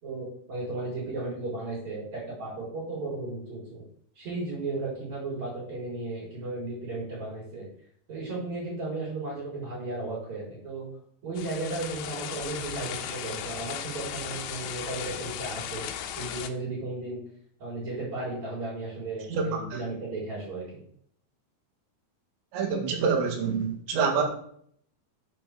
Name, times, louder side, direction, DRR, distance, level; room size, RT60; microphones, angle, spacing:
voice 1, 0.0-3.8 4.1-7.7 8.1-10.8 11.2-15.8 16.2-17.2 17.6-20.8, right 2 dB, 40° right, -8 dB, 5.8 m, -35 dB
sound 1, 11.4-16.5, left 10 dB, 90° left, 3.2 m, -36 dB
voice 2, 19.3-19.8 22.5-24.2, right 5 dB, 85° right, 3 dB, 4.2 m, -27 dB
9.1 x 6.7 x 7.0 m, 0.64 s
omnidirectional pair, 5.1 m